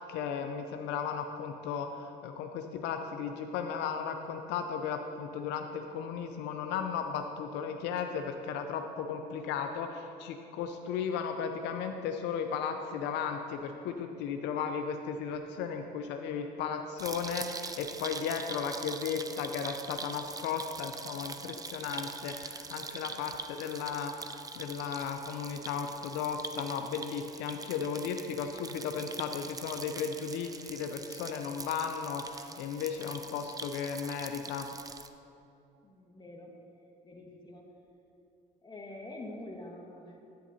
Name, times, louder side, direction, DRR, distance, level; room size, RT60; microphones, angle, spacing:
voice 1, 0.0-34.7, left 6 dB, 85° left, 6 dB, 0.5 m, -35 dB
sound 1, 17.0-35.1, right 4 dB, 20° right, 0.4 m, -43 dB
voice 2, 35.8-36.6 37.0-37.8 38.6-40.2, left 1 dB, 25° left, 0 dB, 1.5 m, -46 dB
10.0 x 9.1 x 2.8 m, 2.7 s
supercardioid pair, 75°, 18 cm